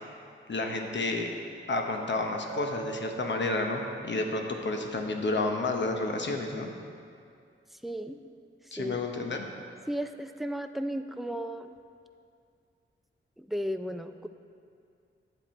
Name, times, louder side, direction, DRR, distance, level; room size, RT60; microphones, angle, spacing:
voice 1, 0.5-1.3 1.7-6.7 8.7-9.5, left 2 dB, 60° left, 3 dB, 0.9 m, -30 dB
Chink clink, 2.5-6.5, right 8 dB, 75° right, 0.4 m, -45 dB
voice 2, 7.8-8.2 8.8-9.0 9.9-11.8 13.4-14.3, equal, ahead, 7 dB, 0.3 m, -34 dB
10.0 x 7.4 x 4.4 m, 2.3 s
wide cardioid pair, 130°, 21 cm